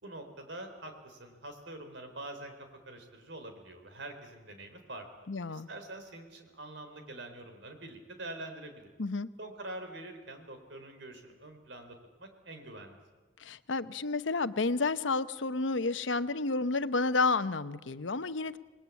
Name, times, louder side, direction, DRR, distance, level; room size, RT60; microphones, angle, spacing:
voice 1, 0.0-2.5 2.9-5.1 5.5-8.9 9.4-13.0, right 2 dB, 75° right, 6 dB, 4.1 m, -45 dB
voice 2, 5.3-5.7 9.0-9.3 13.4-18.6, left 3 dB, 85° left, 12 dB, 0.9 m, -30 dB
27.0 x 20.5 x 8.5 m, 1.3 s
head